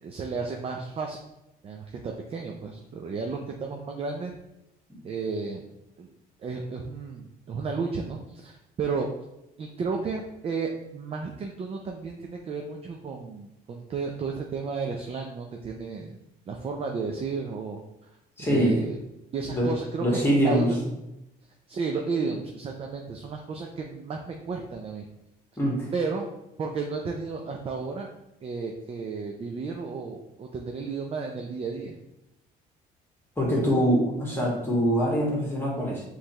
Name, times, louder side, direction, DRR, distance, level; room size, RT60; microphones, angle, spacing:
voice 1, 0.0-1.2 1.6-4.3 5.0-5.7 6.0-6.1 6.4-9.1 9.6-16.2 16.5-17.8 18.4-19.0 19.3-20.8 21.7-25.1 25.9-26.3 26.6-28.1 28.4-32.0, right 4 dB, 35° right, 2 dB, 0.5 m, -33 dB
voice 2, 18.4-18.7 19.5-19.7 20.0-20.7 25.6-25.9 33.4-36.0, equal, 15° left, -4 dB, 1.6 m, -24 dB
5.4 x 3.2 x 2.9 m, 0.88 s
cardioid pair, 110°, 17 cm